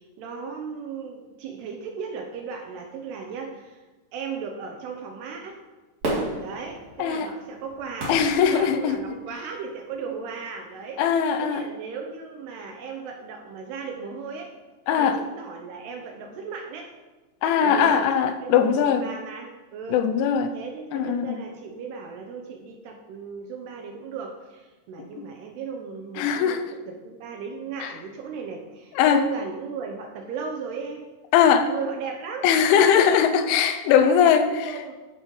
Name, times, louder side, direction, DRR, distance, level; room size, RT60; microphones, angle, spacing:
voice 1, 0.0-3.8 4.1-5.6 6.4-8.1 8.4-11.0 11.4-14.5 15.0-16.9 17.6-20.1 20.5-31.1 31.7-33.1 33.8-34.9, right 5 dB, 75° right, 2.5 m, -36 dB
Fireworks, 6.0-9.3 9.9-10.0, right 2 dB, 40° right, 3.5 m, -32 dB
voice 2, 7.0-7.3 8.1-9.2 11.0-11.6 14.9-15.2 17.4-19.0 19.9-20.5 20.9-21.4 25.2-25.3 26.2-26.7 27.8-27.9 29.0-29.2 31.3-31.7 32.4-34.5, left 8 dB, 85° left, 3.1 m, -20 dB
14.0 x 10.0 x 3.2 m
omnidirectional pair, 5.5 m